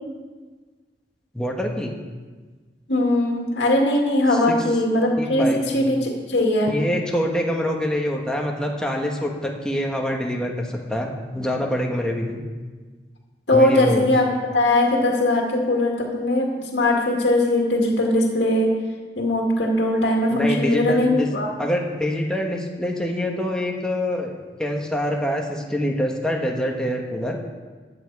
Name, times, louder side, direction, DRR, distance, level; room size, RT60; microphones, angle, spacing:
voice 1, 1.3-1.9 4.5-4.6 5.2-5.8 6.7-12.4 13.5-14.1 20.3-21.3 21.6-27.4, equal, 5° left, 0 dB, 1.2 m, -25 dB
voice 2, 2.9-5.5 5.7-6.7 13.5-14.3 14.5-18.7 19.2-21.5, left 1 dB, 80° left, 0 dB, 2.0 m, -20 dB
13.5 x 8.9 x 4.7 m, 1.4 s
head